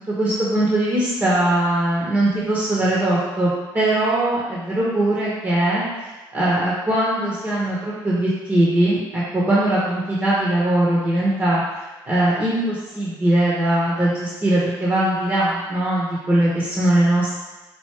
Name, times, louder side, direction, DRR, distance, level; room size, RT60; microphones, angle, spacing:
voice 1, 0.1-11.6 12.1-17.4, right 1 dB, 25° right, -6 dB, 1.0 m, -20 dB
4.6 x 2.6 x 4.5 m, 1.2 s
cardioid pair, 110°, 8 cm